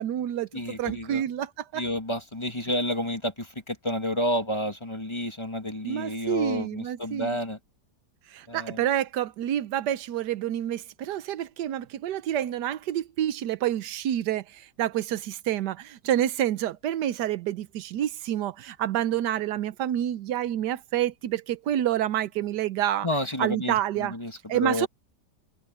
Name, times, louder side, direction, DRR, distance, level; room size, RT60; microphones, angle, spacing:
voice 1, 0.0-0.5 0.8-1.8 5.8-7.4 8.3-23.1 23.4-24.1 24.5-24.9, right 11 dB, 85° right, 1.4 m, -28 dB
voice 2, 0.5-1.2 1.7-7.6 8.5-8.8 23.0-24.9, left 1 dB, 15° left, 1.9 m, -30 dB
omnidirectional pair, 1.7 m